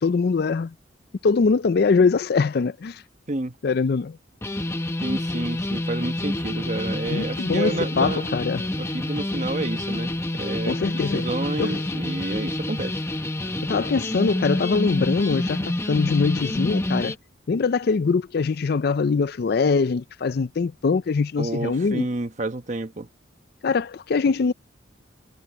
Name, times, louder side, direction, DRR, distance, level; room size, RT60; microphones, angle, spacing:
voice 1, 0.0-0.7 1.2-3.0 3.6-4.2 7.1-8.7 10.7-11.3 11.6-11.8 13.6-17.1 17.5-22.1 23.6-24.5, left 4 dB, 55° left, 0.4 m, -23 dB
sound 1, 4.4-17.2, left 1 dB, 15° left, 0.8 m, -28 dB
voice 2, 5.0-8.3 8.8-13.0 21.4-23.1, right 2 dB, 40° right, 1.1 m, -30 dB
head